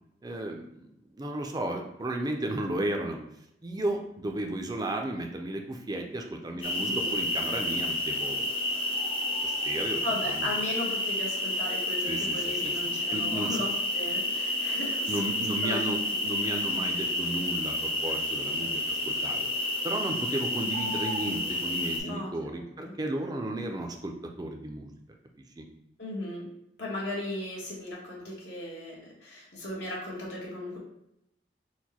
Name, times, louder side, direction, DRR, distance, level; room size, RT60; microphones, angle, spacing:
voice 1, 0.2-3.2 3.6-8.8 9.4-10.5 12.1-12.7 13.1-13.6 15.1-19.5 19.8-24.9 25.6-25.7, right 1 dB, 20° right, 3 dB, 0.4 m, -34 dB
sound 1, 6.6-22.0, left 1 dB, 30° left, 0.7 m, -30 dB
voice 2, 6.8-7.2 7.6-7.7 10.0-15.1 15.6-15.8 16.1-16.2 22.0-22.6 22.8-22.9 26.0-26.5 26.8-30.8, left 1 dB, 80° left, -4 dB, 1.3 m, -37 dB
4.5 x 2.1 x 4.1 m, 0.81 s
head